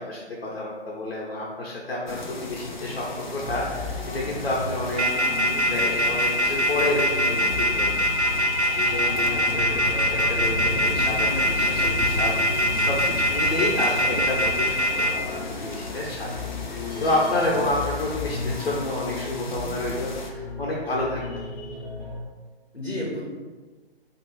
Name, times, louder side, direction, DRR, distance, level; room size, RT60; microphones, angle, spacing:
voice 1, 0.0-5.0 5.4-8.2 8.8-12.3 12.8-13.0 13.2-16.5 17.0-21.4, left 2 dB, 65° left, -4 dB, 0.9 m, -29 dB
sound 1, 2.1-20.3, left 3 dB, 45° left, 0.6 m, -35 dB
sound 2, 3.4-22.2, left 2 dB, 10° left, 1.2 m, -35 dB
sound 3, 5.0-15.1, equal, 85° right, 0.6 m, -22 dB
voice 2, 22.7-23.2, left 1 dB, 90° left, -5 dB, 1.1 m, -33 dB
3.0 x 2.9 x 4.5 m, 1.3 s
figure-of-eight pair, 135°, 32 cm